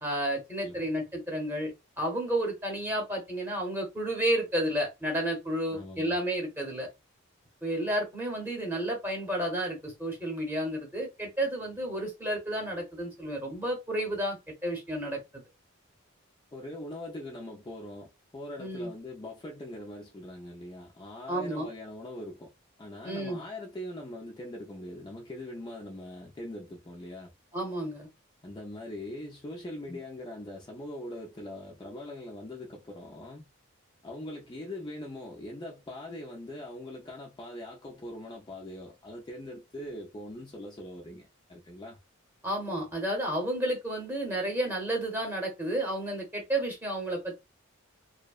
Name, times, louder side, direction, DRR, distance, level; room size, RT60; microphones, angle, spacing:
voice 1, 0.0-6.9 7.6-14.4 14.6-15.2 18.6-18.9 21.3-21.7 23.0-23.4 27.5-28.1 29.9-30.0 42.4-47.4, right 1 dB, 10° right, 0.8 m, -31 dB
voice 2, 5.7-6.1 16.5-22.5 22.8-27.3 28.4-33.5 34.0-42.0, left 1 dB, 20° left, 0.3 m, -42 dB
2.6 x 2.0 x 2.3 m
head